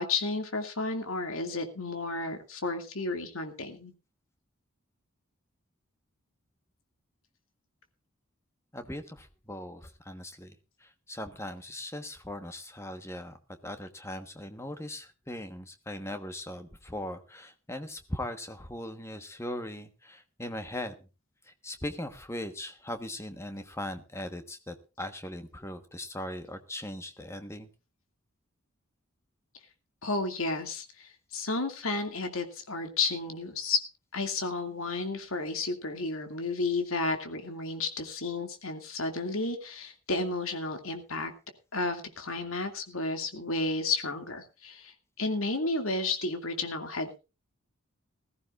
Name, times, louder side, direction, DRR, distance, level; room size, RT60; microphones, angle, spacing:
voice 1, 0.0-3.9 30.0-33.8 34.1-41.3 41.7-47.2, left 3 dB, 75° left, 6 dB, 2.4 m, -32 dB
voice 2, 8.7-10.5 10.8-13.4 13.6-21.1 21.4-27.7, left 1 dB, 10° left, 8 dB, 1.3 m, -39 dB
20.0 x 14.5 x 2.5 m, 0.31 s
head